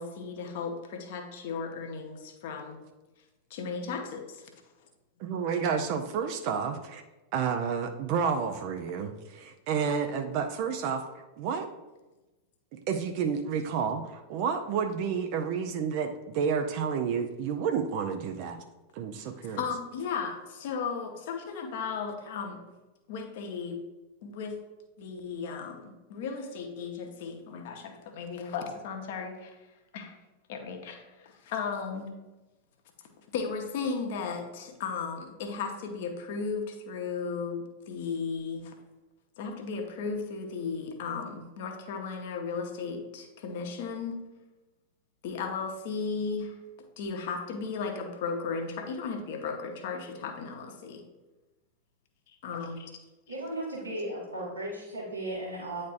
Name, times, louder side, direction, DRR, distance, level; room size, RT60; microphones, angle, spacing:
voice 1, 0.0-2.8 3.5-4.5 19.4-22.6 23.1-23.8 24.2-24.5 25.0-29.6 29.9-30.2 30.5-32.1 33.3-38.7 39.4-44.2 45.2-46.6 47.0-51.0 52.3-52.9, left 5 dB, 50° left, 3 dB, 0.9 m, -35 dB
voice 2, 5.2-7.0 7.3-11.0 11.4-11.7 12.7-18.6 18.9-19.6, right 6 dB, 45° right, 6 dB, 0.5 m, -30 dB
voice 3, 53.3-55.8, right 1 dB, 85° right, -8 dB, 1.8 m, -35 dB
9.2 x 4.2 x 2.5 m, 1.1 s
figure-of-eight pair, 90°, 0 cm